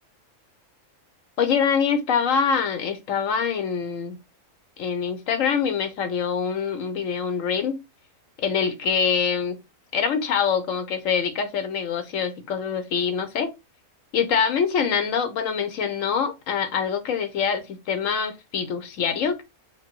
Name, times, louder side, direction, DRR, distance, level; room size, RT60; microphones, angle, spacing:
voice 1, 1.4-4.2 4.8-7.8 8.4-9.6 9.9-13.5 14.1-19.4, left 6 dB, 75° left, 1.2 m, -24 dB
4.6 x 2.2 x 4.4 m
omnidirectional pair, 1.4 m